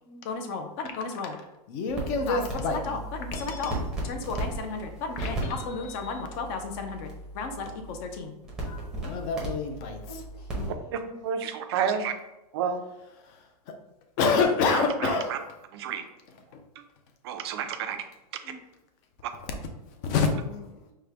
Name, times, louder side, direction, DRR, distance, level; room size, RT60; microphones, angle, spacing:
voice 1, 0.2-3.8 4.0-7.1 7.3-8.3 8.6-10.0 14.2-15.3 20.0-20.3, left 4 dB, 25° left, 5 dB, 0.4 m, -29 dB
sound 1, 1.9-10.7, right 1 dB, 5° right, 0.7 m, -36 dB
voice 2, 10.1-11.2 18.4-18.6 19.7-20.1 20.4-20.9, left 3 dB, 75° left, -3 dB, 1.3 m, -47 dB
voice 3, 10.9-12.1 12.5-12.8 14.7-15.4 15.7-16.0 17.2-18.0, right 7 dB, 40° right, 7 dB, 0.4 m, -30 dB
4.9 x 2.1 x 3.4 m, 0.95 s
supercardioid pair, 165°, 21 cm